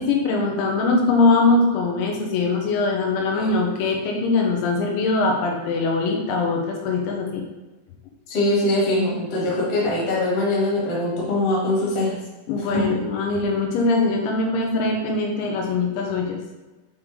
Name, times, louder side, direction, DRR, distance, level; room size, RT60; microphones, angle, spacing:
voice 1, 0.0-7.4 12.5-16.4, left 3 dB, 90° left, 1 dB, 3.2 m, -22 dB
voice 2, 8.3-12.2 12.7-12.8, left 1 dB, 50° left, -6 dB, 1.8 m, -22 dB
8.0 x 3.6 x 3.2 m, 1.1 s
omnidirectional pair, 5.3 m